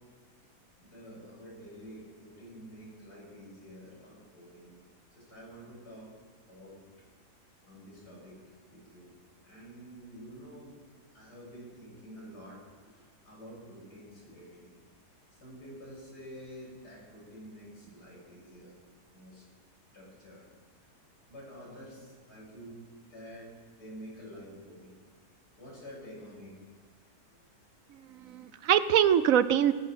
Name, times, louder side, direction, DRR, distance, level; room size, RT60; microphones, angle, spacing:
voice 1, 0.8-4.8 5.1-6.1 6.5-6.8 7.7-8.4 8.7-9.1 9.4-10.8 11.1-14.7 15.4-18.8 19.1-19.4 19.9-20.5 20.8-20.9 21.3-22.8 23.1-25.0 25.6-26.6, equal, 75° left, -5 dB, 7.3 m, -49 dB
voice 2, 27.9-29.7, right 10 dB, 65° right, 14 dB, 1.0 m, -24 dB
20.5 x 11.0 x 5.7 m, 1.5 s
omnidirectional pair, 1.8 m